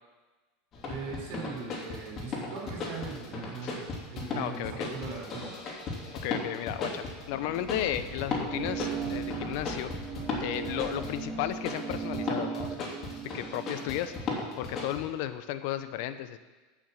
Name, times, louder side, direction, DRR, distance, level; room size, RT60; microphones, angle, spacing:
sound 1, 0.7-15.0, left 3 dB, 30° left, 3.1 m, -36 dB
voice 1, 0.9-3.8 4.1-5.5, right 4 dB, 60° right, 0 dB, 4.7 m, -40 dB
voice 2, 4.4-4.9 6.2-9.9 10.4-12.9 13.3-14.3 14.6-16.4, left 12 dB, 60° left, 11 dB, 0.8 m, -34 dB
sound 2, 7.0-11.8, left 1 dB, ahead, 4.7 m, -45 dB
sound 3, 8.5-14.3, right 7 dB, 20° right, 1.1 m, -38 dB
14.0 x 6.2 x 7.6 m, 1.3 s
supercardioid pair, 150°, 0 cm